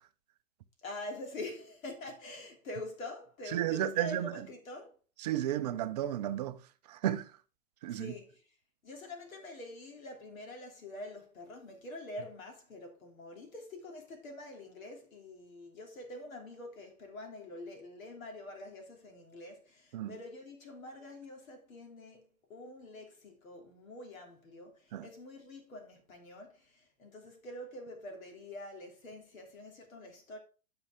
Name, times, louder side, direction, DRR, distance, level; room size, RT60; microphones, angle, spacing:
voice 1, 0.8-4.9 7.9-8.4 8.8-30.4, left 2 dB, 70° left, 3.2 m, -46 dB
voice 2, 3.5-4.3 5.2-6.6 6.9-7.3 7.8-8.1 19.9-20.2 24.9-25.1, right 12 dB, 30° right, 0.5 m, -33 dB
10.0 x 5.5 x 3.6 m
hypercardioid pair, 135°, 42 cm